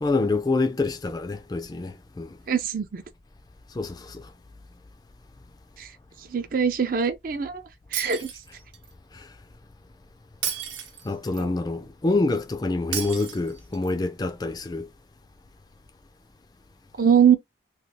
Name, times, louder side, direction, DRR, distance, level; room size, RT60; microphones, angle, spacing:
voice 1, 0.0-2.4 3.7-4.3 9.1-9.3 11.0-14.9, left 3 dB, 20° left, 0.3 m, -26 dB
voice 2, 2.5-3.0 5.8-5.9 6.3-7.6 7.9-8.3 11.4-11.5 17.0-17.4, right 7 dB, 50° right, 0.4 m, -22 dB
Shatter, 7.9-8.9 10.4-11.4 12.9-13.9, right 9 dB, 85° right, 0.8 m, -33 dB
3.2 x 2.3 x 2.7 m
head